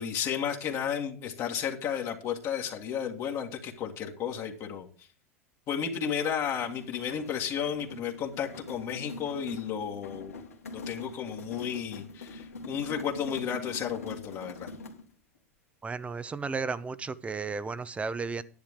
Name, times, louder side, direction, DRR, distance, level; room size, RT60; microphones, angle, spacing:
voice 1, 0.0-5.1 5.7-10.3 10.7-14.7, left 8 dB, 40° left, 1.9 m, -33 dB
sound 1, 6.4-15.1, left 3 dB, 90° left, 2.3 m, -43 dB
voice 2, 15.8-18.4, right 4 dB, 15° right, 0.8 m, -34 dB
11.5 x 10.5 x 3.7 m
hypercardioid pair, 95°, 8 cm